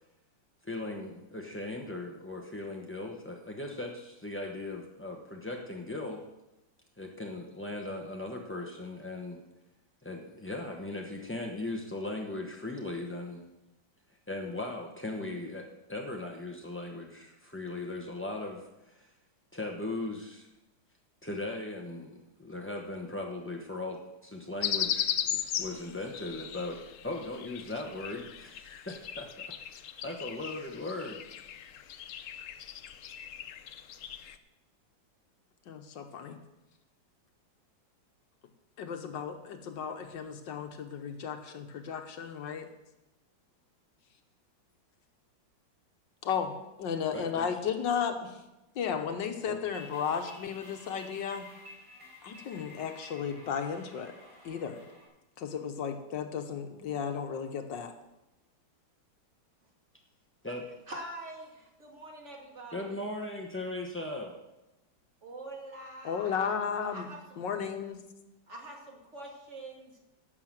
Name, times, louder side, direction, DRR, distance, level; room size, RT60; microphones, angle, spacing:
voice 1, 0.7-6.2 7.0-9.4 10.0-13.5 14.3-18.6 19.5-20.5 21.2-29.3 30.0-31.2 47.1-47.5 49.4-49.6 60.4-60.7 62.7-64.3, left 2 dB, 15° left, 0 dB, 0.4 m, -38 dB
sound 1, 24.6-34.4, left 9 dB, 90° left, 0.6 m, -37 dB
voice 2, 35.7-36.4 38.8-42.7 46.2-48.4 48.7-51.5 52.2-54.1 54.4-54.8 55.4-57.9 66.0-67.1 67.4-68.0, left 7 dB, 70° left, 7 dB, 1.6 m, -34 dB
sound 2, 49.7-55.1, left 1 dB, 85° right, 4.7 m, -52 dB
voice 3, 60.9-63.0 65.2-66.6 66.9-67.4 68.5-70.0, right 1 dB, 35° right, 0 dB, 2.3 m, -45 dB
11.5 x 6.7 x 7.4 m, 0.98 s
omnidirectional pair, 2.1 m